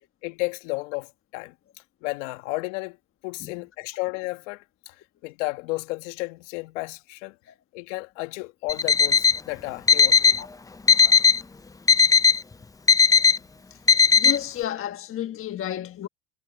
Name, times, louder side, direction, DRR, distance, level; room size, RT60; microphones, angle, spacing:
voice 1, 0.2-1.5 2.0-3.0 3.2-4.9 5.2-7.4 7.7-10.4, left 24 dB, 75° left, 1.7 m, -33 dB
Alarm, 8.7-9.4 9.9-10.4 10.9-11.4 11.9-12.4 12.9-13.4 13.9-14.4, left 6 dB, 10° left, 0.7 m, -17 dB
voice 2, 14.1-16.1, left 11 dB, 35° left, 1.5 m, -31 dB
supercardioid pair, 105°, 37 cm